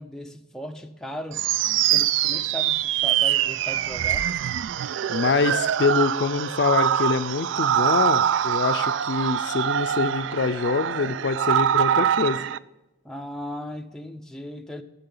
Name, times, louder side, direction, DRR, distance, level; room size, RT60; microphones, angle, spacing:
voice 1, 0.0-1.5 1.8-4.3 13.0-14.8, equal, 5° left, 0.4 m, -37 dB
sound 1, 1.3-12.6, right 10 dB, 75° right, 0.3 m, -24 dB
voice 2, 5.1-12.5, left 4 dB, 60° left, 0.4 m, -25 dB
14.5 x 5.7 x 3.8 m
head